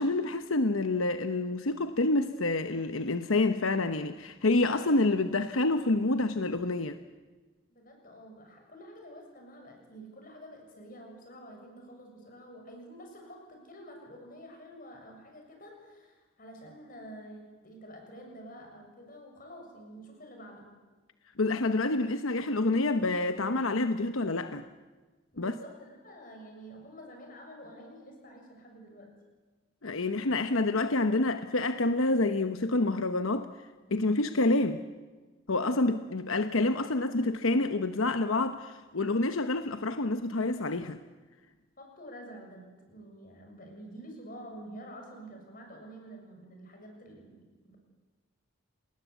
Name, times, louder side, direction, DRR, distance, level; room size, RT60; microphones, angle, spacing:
voice 1, 0.0-7.0 21.4-24.6 25.4-25.5 29.8-33.5 33.9-34.8 35.5-41.0, left 2 dB, 85° left, 9 dB, 1.0 m, -28 dB
voice 2, 7.7-20.7 25.3-29.2 41.8-47.8, equal, 40° left, 2 dB, 7.0 m, -48 dB
29.0 x 20.0 x 8.3 m, 1.3 s
head